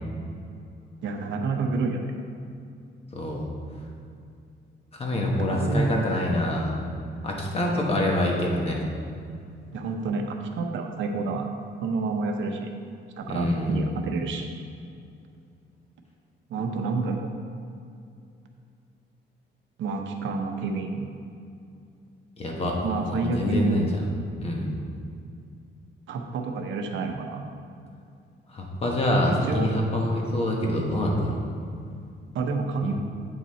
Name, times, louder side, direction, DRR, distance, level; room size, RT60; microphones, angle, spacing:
voice 1, 1.0-2.1 5.5-6.1 9.7-11.5 11.8-12.7 13.2-14.5 16.5-17.3 19.8-21.1 22.8-23.8 26.1-27.4 29.1-29.7 32.3-32.9, right 3 dB, 80° right, 3 dB, 0.9 m, -29 dB
voice 2, 3.1-3.4 4.9-6.8 7.2-8.9 13.2-13.8 22.4-22.8 23.0-24.0 24.4-24.7 28.5-31.4, left 1 dB, 30° left, -1 dB, 1.2 m, -26 dB
8.3 x 5.6 x 4.2 m, 2.4 s
cardioid pair, 160°, 20 cm